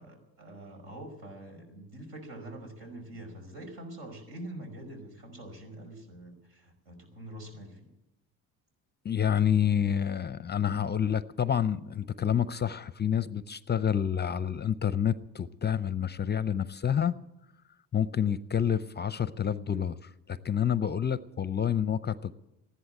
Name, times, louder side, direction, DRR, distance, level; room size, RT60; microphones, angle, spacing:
voice 1, 0.0-7.9, right 1 dB, 75° right, 3 dB, 5.4 m, -45 dB
voice 2, 9.0-17.2 17.9-22.3, left 8 dB, 25° left, 16 dB, 0.5 m, -28 dB
14.5 x 11.5 x 8.8 m, 0.94 s
supercardioid pair, 75°, 39 cm